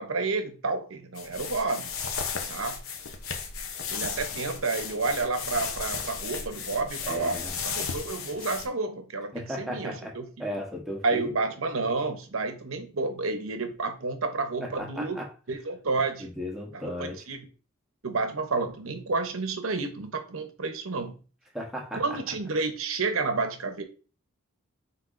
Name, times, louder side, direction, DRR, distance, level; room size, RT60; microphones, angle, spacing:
voice 1, 0.0-1.9 2.5-2.8 3.9-10.3 11.0-15.2 15.5-16.3 16.7-17.5 18.0-21.2 21.9-23.8, right 3 dB, 70° right, 7 dB, 0.8 m, -30 dB
sound 1, 1.2-8.7, left 6 dB, 75° left, 0.7 m, -35 dB
voice 2, 7.0-7.6 9.3-10.1 10.4-11.4 14.6-15.3 16.2-17.2 21.5-22.2, equal, ahead, -1 dB, 1.1 m, -35 dB
5.6 x 3.7 x 2.5 m, 0.36 s
head